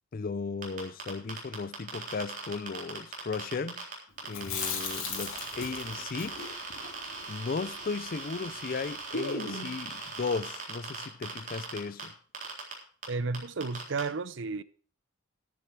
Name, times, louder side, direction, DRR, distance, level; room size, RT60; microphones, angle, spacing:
voice 1, 0.1-3.9 4.3-6.4 7.3-12.1, left 4 dB, 45° left, 0.4 m, -36 dB
sound 1, 0.6-3.9 4.2-12.0 12.3-12.7 13.0-13.1 13.3-14.0, right 4 dB, 40° right, 3.6 m, -39 dB
Chewing mastication, 4.3-8.5 8.7-8.8 9.1-9.9, left 4 dB, 85° left, 3.0 m, -37 dB
voice 2, 13.0-14.6, right 4 dB, 60° right, 0.6 m, -32 dB
11.0 x 10.0 x 4.6 m
head